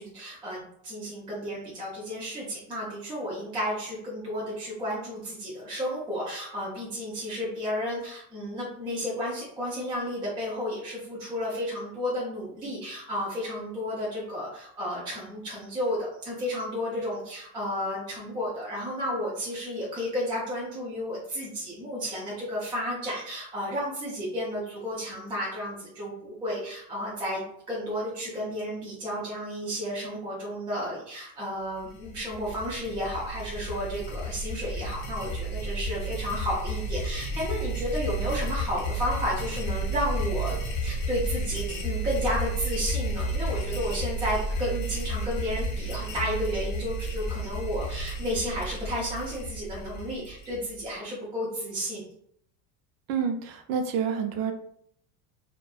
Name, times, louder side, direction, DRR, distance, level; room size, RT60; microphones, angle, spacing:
voice 1, 0.0-40.6 40.8-52.0, equal, 15° right, -6 dB, 0.4 m, -32 dB
sound 1, 31.8-50.9, right 1 dB, 45° left, 0.6 m, -32 dB
voice 2, 53.1-54.5, right 7 dB, 75° right, 5 dB, 0.6 m, -28 dB
2.6 x 2.2 x 2.3 m, 0.67 s
cardioid pair, 165°, 40 cm